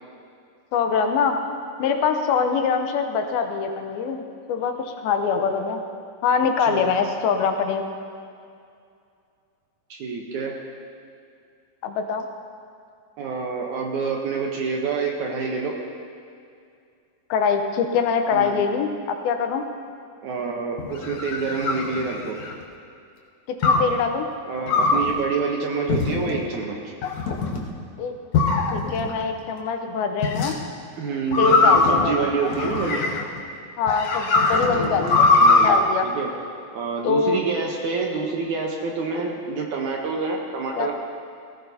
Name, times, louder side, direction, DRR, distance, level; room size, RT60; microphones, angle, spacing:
voice 1, 0.7-1.4 1.8-5.8 6.2-7.8 11.8-12.3 17.3-19.7 23.5-24.3 28.0-28.1 28.7-30.6 31.4-32.3 33.8-35.3 35.6-36.1 37.0-37.4 40.8-40.9, left 5 dB, 85° left, 5 dB, 2.7 m, -23 dB
voice 2, 9.9-10.5 13.2-15.7 18.3-18.6 20.2-22.4 24.5-26.9 31.0-33.1 34.6-35.1 35.3-36.3 36.7-40.9, right 4 dB, 65° right, 0 dB, 2.1 m, -27 dB
sound 1, 20.8-22.6 23.6-24.0 24.7-25.1 25.9-26.4 27.0-27.6 28.3-29.1 30.2-30.5 31.3-33.4 33.9-35.7, left 3 dB, 65° left, 1.6 m, -20 dB
18.5 x 15.5 x 2.8 m, 2.4 s
omnidirectional pair, 4.3 m